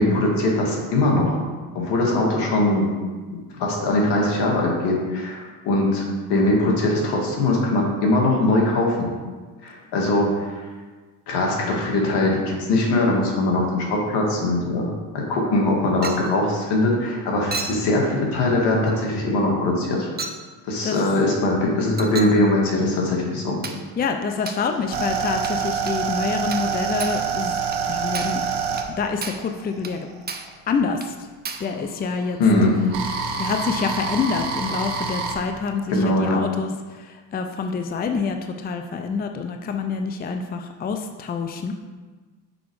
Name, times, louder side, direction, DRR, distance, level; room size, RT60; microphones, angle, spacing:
voice 1, 0.0-1.4 1.7-2.8 3.6-9.1 9.6-10.6 11.3-20.1 20.7-23.6 32.4-32.7 35.9-36.4, left 2 dB, 70° left, -1 dB, 2.1 m, -21 dB
Chink clink, 16.0-16.3 17.5-17.9 18.9-19.0 20.2-20.4 22.0-22.4 23.6-23.9 24.5-24.7 25.4-25.6 25.9-26.0 26.5-26.7 27.0-27.2 27.7-27.8 28.1-28.4 28.8-28.9 29.2-29.5 29.8-30.0 30.3-30.6 31.0-31.1 31.4-31.7, right 4 dB, 25° right, 0.7 m, -33 dB
voice 2, 24.0-27.5 27.9-28.4 29.0-30.1 30.7-31.1 31.6-32.4 33.4-41.7, left 5 dB, 25° left, 6 dB, 0.5 m, -27 dB
sound 1, 24.4-30.5 31.5-35.4, right 5 dB, 70° right, 1.1 m, -27 dB
6.3 x 4.7 x 4.7 m, 1.4 s
supercardioid pair, 85°, 42 cm